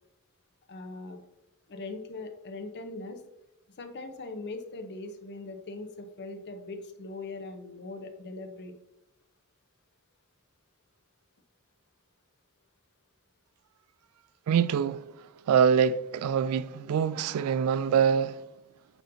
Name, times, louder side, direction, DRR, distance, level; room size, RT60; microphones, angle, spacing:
voice 1, 0.7-1.2 1.7-3.2 3.8-8.7, left 3 dB, 50° left, 0.7 m, -40 dB
voice 2, 14.5-15.0 15.5-18.4, right 7 dB, 90° right, 0.3 m, -24 dB
8.9 x 4.1 x 2.7 m
head